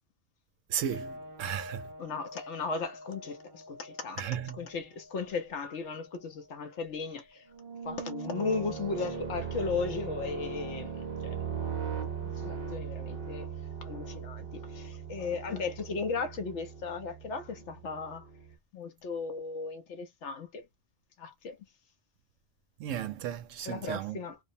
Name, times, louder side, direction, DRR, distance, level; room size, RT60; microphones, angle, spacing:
voice 1, 0.7-1.9 4.2-4.6 22.8-24.2, right 10 dB, 75° right, 0.9 m, -35 dB
sound 1, 0.9-5.4 5.9-6.0 7.5-18.5, right 5 dB, 55° right, 0.8 m, -40 dB
voice 2, 2.0-4.3 4.6-7.5 7.8-10.9 11.2-11.4 11.9-12.1 12.3-13.5 13.8-18.3 18.7-20.6 21.2-21.6 23.6-24.4, left 4 dB, 70° left, 0.9 m, -36 dB
2.4 x 2.0 x 2.6 m
omnidirectional pair, 1.3 m